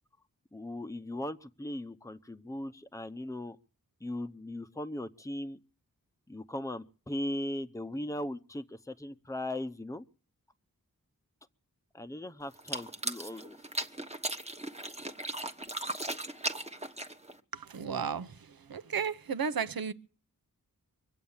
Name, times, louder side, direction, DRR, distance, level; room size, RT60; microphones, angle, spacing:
voice 1, 0.5-3.6 4.0-5.6 6.3-10.0 11.9-13.6, left 1 dB, 10° left, 0.8 m, -38 dB
sound 1, 12.5-17.4, right 1 dB, 20° right, 1.2 m, -37 dB
voice 2, 17.5-19.9, right 6 dB, 85° right, 0.9 m, -34 dB
23.5 x 8.5 x 7.1 m
wide cardioid pair, 70°, 35 cm